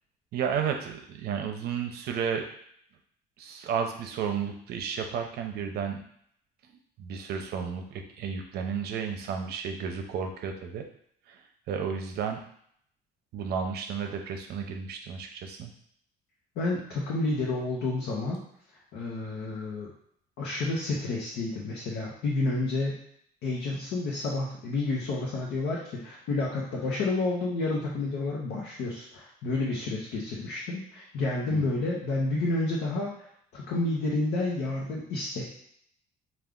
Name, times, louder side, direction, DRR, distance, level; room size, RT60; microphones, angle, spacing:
voice 1, 0.3-2.4 3.4-6.0 7.0-10.8 11.3-11.4 11.7-12.4 13.3-15.7 31.5-31.6, right 7 dB, 70° right, 4 dB, 0.6 m, -32 dB
voice 2, 16.6-18.4 18.9-19.9 20.4-23.0 23.4-33.1 33.5-35.4, left 2 dB, 80° left, -4 dB, 0.8 m, -30 dB
3.4 x 2.4 x 3.7 m, 0.67 s
cardioid pair, 110°, 17 cm